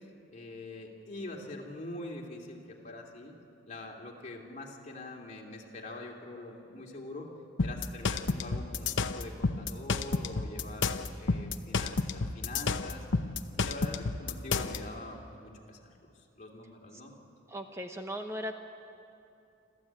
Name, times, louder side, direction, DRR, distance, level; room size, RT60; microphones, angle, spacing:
voice 1, 0.3-3.4 3.7-7.3 7.6-10.9 11.2-13.1 13.6-17.1, left 2 dB, 40° left, -1 dB, 2.7 m, -44 dB
sound 1, 7.6-14.8, left 4 dB, 70° left, 0.8 m, -30 dB
voice 2, 17.5-18.6, equal, 15° right, 4 dB, 0.9 m, -37 dB
28.0 x 13.5 x 8.8 m, 2.6 s
head